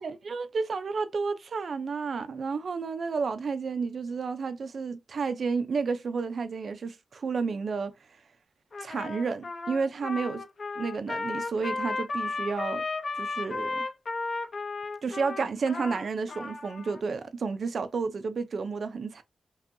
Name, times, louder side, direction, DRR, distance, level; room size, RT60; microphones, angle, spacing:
voice 1, 0.0-7.9 8.8-10.4 10.8-12.9 13.1-13.9 15.0-19.2, right 4 dB, 55° right, 0.5 m, -31 dB
Trumpet, 8.7-17.0, left 3 dB, 50° left, 0.7 m, -34 dB
5.4 x 2.3 x 2.6 m
wide cardioid pair, 130°, 0 cm